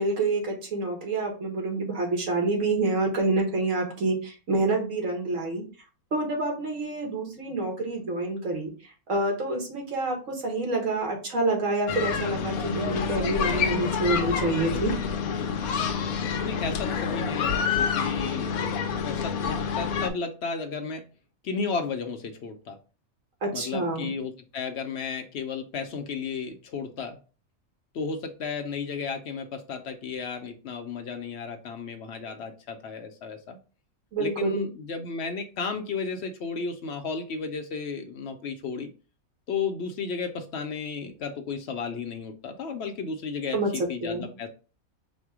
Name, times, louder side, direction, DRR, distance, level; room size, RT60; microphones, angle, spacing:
voice 1, 0.0-5.6 6.1-14.9 23.4-24.1 34.1-34.7 43.5-43.7 44.0-44.3, right 2 dB, 65° right, 1 dB, 1.7 m, -27 dB
sound 1, 11.9-20.1, left 6 dB, 85° left, 1.0 m, -28 dB
voice 2, 16.4-21.1 21.4-22.8 23.5-27.2 27.9-33.6 34.2-38.9 39.5-44.5, left 5 dB, 60° left, 6 dB, 0.8 m, -33 dB
4.2 x 2.2 x 4.6 m, 0.34 s
omnidirectional pair, 1.5 m